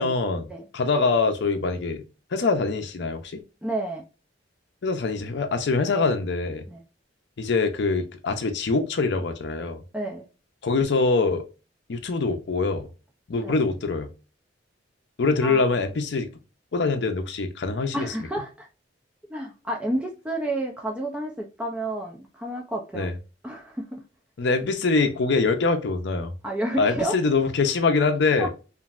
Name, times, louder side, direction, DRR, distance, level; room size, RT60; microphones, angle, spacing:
voice 1, 0.0-0.4 0.7-2.0 2.3-3.3 4.8-6.6 7.4-9.8 10.6-11.4 11.9-12.9 13.3-14.1 15.2-16.3 16.7-18.1 22.9-23.1 24.4-26.3 26.8-28.5, left 4 dB, 60° left, 0.5 m, -24 dB
voice 2, 3.6-4.0 6.7-6.8 9.9-10.2 13.4-13.6 15.4-15.6 17.9-18.7 19.3-23.1 23.4-24.0 26.4-27.1 28.4-28.5, right 1 dB, 5° right, 0.4 m, -30 dB
3.0 x 2.5 x 2.4 m
head